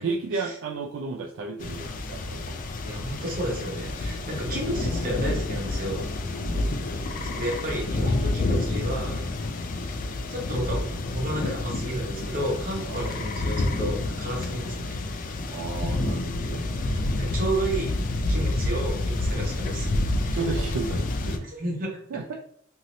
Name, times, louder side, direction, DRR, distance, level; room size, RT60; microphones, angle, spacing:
voice 1, 0.0-2.6 6.3-6.9 12.9-13.2 15.5-16.7 20.3-21.5 22.1-22.3, right 4 dB, 60° right, 0 dB, 0.3 m, -33 dB
sound 1, 1.6-21.4, left 2 dB, 40° left, 0.3 m, -29 dB
voice 2, 2.8-6.1 7.2-9.4 10.3-10.9 11.1-15.0 16.9-17.9 18.3-19.9 20.2-20.4 21.4-22.0, right 1 dB, 40° right, -2 dB, 1.0 m, -32 dB
2.7 x 2.7 x 3.0 m, 0.63 s
head